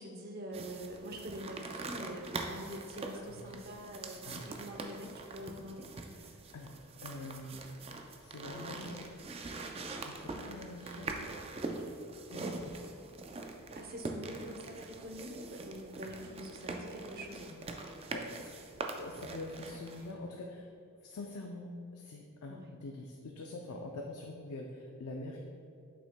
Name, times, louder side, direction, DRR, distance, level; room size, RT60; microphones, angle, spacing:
voice 1, 0.0-5.9 13.7-17.5 22.5-22.7, equal, 45° right, 2 dB, 0.7 m, -45 dB
sound 1, 0.5-20.1, right 3 dB, 25° right, 0.4 m, -43 dB
voice 2, 3.1-3.5 4.2-4.5 6.3-7.6 8.2-9.3 9.6-11.3 12.3-12.9 18.1-18.5 19.0-20.7 21.0-25.4, left 2 dB, 85° left, 1 dB, 0.5 m, -45 dB
8.2 x 6.1 x 2.2 m, 2.5 s
head